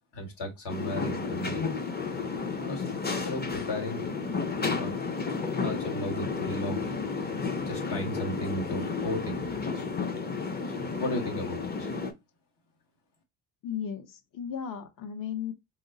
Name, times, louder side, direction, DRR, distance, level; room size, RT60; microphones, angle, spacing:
voice 1, 0.1-1.7 2.6-2.8 3.2-4.1 4.6-4.9 5.6-7.3 7.6-9.8 10.7-11.9, left 1 dB, 65° left, 1.7 m, -35 dB
sound 1, 0.7-12.1, left 4 dB, 25° left, 0.6 m, -32 dB
voice 2, 13.6-15.5, left 8 dB, 50° left, 0.8 m, -35 dB
4.3 x 2.0 x 3.8 m
cardioid pair, 120°, 43 cm